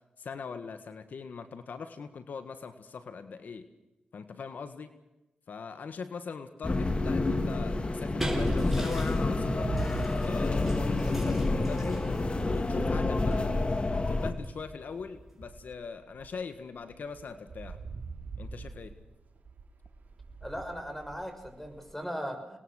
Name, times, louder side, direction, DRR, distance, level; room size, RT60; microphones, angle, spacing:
voice 1, 0.2-3.7 4.1-4.9 5.5-9.8 10.2-12.1 12.4-17.8 18.4-18.9, left 5 dB, 75° left, 10 dB, 1.6 m, -41 dB
sound 1, 6.6-14.3, left 2 dB, 40° left, 2.3 m, -28 dB
sound 2, 7.7-15.8, right 1 dB, 10° right, 7.1 m, -42 dB
sound 3, 9.4-14.9 15.4-21.9, right 4 dB, 70° right, 4.0 m, -43 dB
voice 2, 20.4-22.6, equal, 5° left, 6 dB, 6.4 m, -38 dB
26.0 x 20.0 x 6.5 m, 0.98 s
cardioid pair, 60°, 3 cm